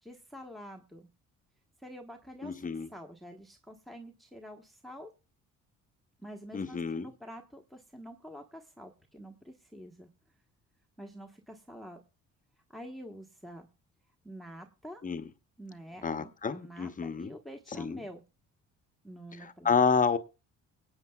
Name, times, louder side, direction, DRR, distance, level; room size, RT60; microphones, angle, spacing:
voice 1, 0.0-1.1 1.8-5.1 6.2-10.1 11.0-12.0 12.7-13.7 14.2-15.0 15.6-18.2 19.0-19.7, equal, ahead, 1.1 m, -47 dB
voice 2, 2.4-2.9 6.5-7.1 15.0-15.2 16.0-17.3 17.7-18.0 19.4-20.2, left 5 dB, 30° left, 0.8 m, -29 dB
23.5 x 8.7 x 2.3 m
cardioid pair, 110°, 29 cm